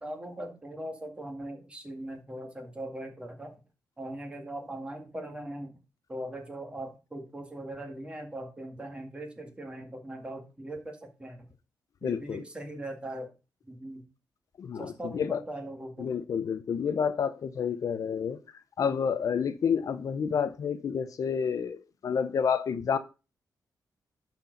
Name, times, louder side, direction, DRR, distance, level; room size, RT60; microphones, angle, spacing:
voice 1, 0.0-3.5 4.0-5.8 6.1-11.4 12.0-13.3 13.6-14.1 14.8-16.1, right 1 dB, 15° right, 1.9 m, -40 dB
voice 2, 12.0-12.4 14.6-15.4 16.0-18.4 18.8-23.0, left 7 dB, 55° left, 0.7 m, -29 dB
11.5 x 4.5 x 5.2 m
wide cardioid pair, 135°, 7 cm